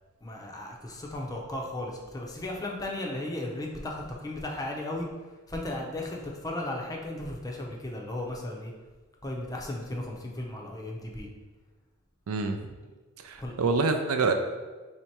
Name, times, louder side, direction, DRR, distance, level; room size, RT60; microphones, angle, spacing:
voice 1, 0.2-5.1 5.5-8.7 9.2-11.3 13.4-13.5, left 1 dB, 15° left, -1 dB, 0.5 m, -35 dB
voice 2, 12.3-12.6 13.2-14.3, right 4 dB, 75° right, 6 dB, 0.4 m, -26 dB
3.4 x 2.8 x 4.5 m, 1.3 s
head